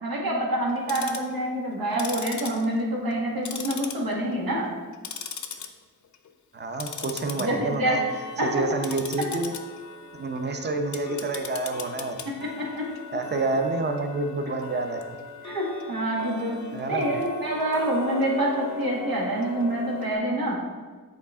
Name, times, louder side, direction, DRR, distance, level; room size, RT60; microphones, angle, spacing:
voice 1, 0.0-4.7 7.4-8.0 8.4-8.5 10.5-10.6 12.4-12.8 15.4-18.5 18.8-20.6, right 1 dB, 85° right, -3 dB, 1.6 m, -27 dB
Tick-tock, 0.7-1.3 1.9-3.2 3.5-4.3 4.7-5.7 6.0-6.3 6.7-20.1, left 5 dB, 55° left, 0.6 m, -38 dB
voice 2, 6.5-8.0 8.4-9.5 10.1-12.4 13.1-15.2 16.7-17.2, right 3 dB, 30° right, 5 dB, 0.7 m, -28 dB
7.2 x 4.2 x 3.6 m, 1.4 s
cardioid pair, 70°, 34 cm